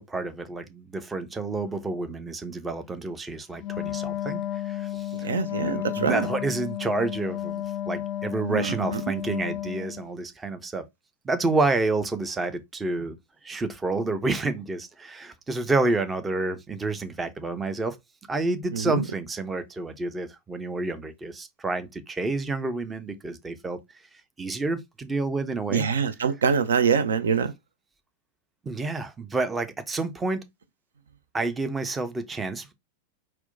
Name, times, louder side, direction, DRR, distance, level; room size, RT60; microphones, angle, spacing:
voice 1, 0.0-5.3 5.6-10.9 11.2-13.2 13.4-18.0 18.3-23.8 24.4-25.9 28.6-30.4 31.3-32.7, right 3 dB, 15° right, 0.5 m, -29 dB
Wind instrument woodwind instrument, 3.6-10.1, left 12 dB, 35° left, 0.4 m, -32 dB
voice 2, 5.2-6.3 8.5-9.0 18.7-19.0 25.7-27.5, right 6 dB, 65° right, 0.3 m, -24 dB
4.3 x 2.1 x 2.5 m
figure-of-eight pair, 90°, 0 cm